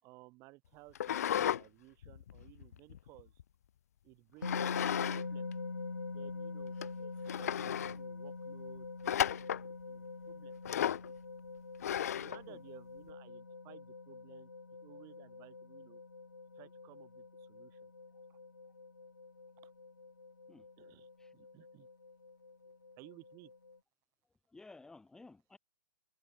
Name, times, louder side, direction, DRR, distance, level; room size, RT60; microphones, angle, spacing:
voice 1, 0.0-3.3 4.0-5.5 6.1-8.9 9.2-10.5 12.2-14.5 14.8-16.0 16.6-17.9 18.3-18.4 20.8-21.1 21.3-21.9 23.0-23.5, right 23 dB, 30° right, 5.9 m, -58 dB
sound 1, 1.0-1.6 2.0-3.4 4.4-5.2 5.5-5.6 6.3-6.4 6.8-6.9 7.3-8.0 9.1-9.7 10.7-11.1 11.8-12.4, left 10 dB, 55° left, 0.5 m, -34 dB
sound 2, 4.4-23.8, left 3 dB, 80° left, 1.1 m, -45 dB
voice 2, 24.5-25.6, left 3 dB, 5° left, 1.4 m, -55 dB
figure-of-eight pair, 110°, 10 cm